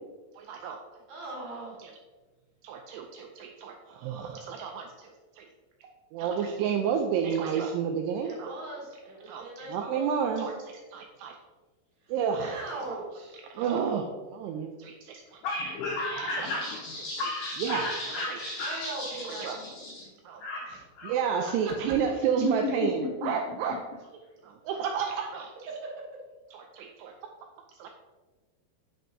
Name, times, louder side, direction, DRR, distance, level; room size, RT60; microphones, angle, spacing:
voice 1, 0.4-0.8 2.6-5.1 5.4-5.5 5.8-8.5 9.3-11.4 12.1-12.6 12.9-13.0 13.4-14.9 16.1-16.6 17.6-17.9 18.3-18.4 19.3-19.6 20.3-20.4 21.0-23.8 24.4-25.5 26.5-27.1 27.8-27.9, right 7 dB, 85° right, 3 dB, 2.4 m, -30 dB
voice 2, 1.1-1.8 8.2-10.5 12.0-12.1 12.4-13.4 18.6-19.5 20.7-20.8 21.4-21.9 27.0-27.2, right 2 dB, 70° right, -3 dB, 3.5 m, -40 dB
voice 3, 15.4-20.1 20.4-21.2 22.4-23.4, left 3 dB, 80° left, -2 dB, 2.5 m, -34 dB
9.3 x 7.7 x 2.7 m, 1.3 s
omnidirectional pair, 5.4 m